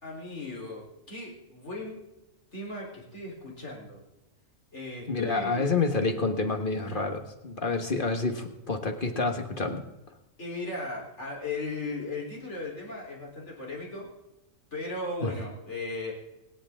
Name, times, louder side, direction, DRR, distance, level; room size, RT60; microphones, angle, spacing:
voice 1, 0.0-2.0 2.5-4.0 4.7-5.8 6.8-7.1 10.4-14.1 14.7-16.1, left 2 dB, 60° left, -2 dB, 4.3 m, -37 dB
voice 2, 5.1-9.8 15.2-15.3, left 3 dB, 40° left, 5 dB, 1.6 m, -28 dB
26.0 x 8.9 x 3.7 m, 1.0 s
omnidirectional pair, 1.4 m